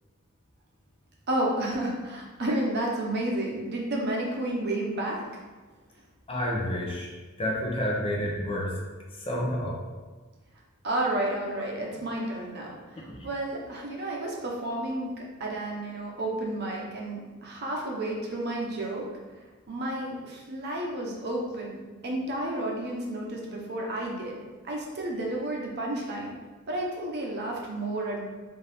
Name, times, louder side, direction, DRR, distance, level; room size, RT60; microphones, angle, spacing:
voice 1, 1.3-5.2 10.8-15.1 15.4-19.0 19.7-21.8 22.0-24.4 24.6-26.4 26.7-28.3, right 1 dB, 55° right, -2 dB, 0.8 m, -31 dB
voice 2, 6.3-7.1 7.4-8.8 9.1-9.8 13.1-13.2, equal, 30° left, -2 dB, 0.7 m, -29 dB
4.2 x 2.7 x 3.4 m, 1.3 s
head